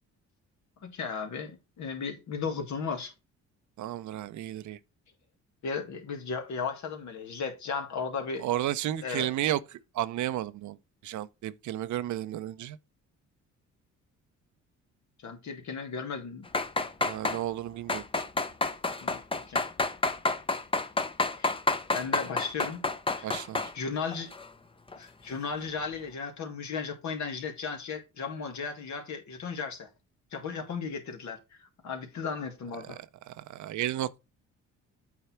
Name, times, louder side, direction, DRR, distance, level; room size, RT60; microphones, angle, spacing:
voice 1, 0.8-3.1 5.6-8.4 9.0-9.3 15.2-16.5 19.0-19.2 19.5-19.6 21.4-21.5 21.9-22.8 23.1-23.3 23.7-24.3 25.0-29.9 30.3-31.4 31.8-33.0, left 5 dB, 70° left, 2.1 m, -35 dB
voice 2, 3.8-4.8 8.4-9.6 9.9-10.8 11.0-12.8 17.0-18.0 23.2-23.6 32.8-32.9 33.3-34.2, right 13 dB, 70° right, 0.7 m, -32 dB
sound 1, 16.5-17.4 17.9-23.7 24.1-24.5 24.9-25.0, left 3 dB, 15° left, 0.8 m, -29 dB
8.4 x 4.5 x 4.4 m
cardioid pair, 90°, 30 cm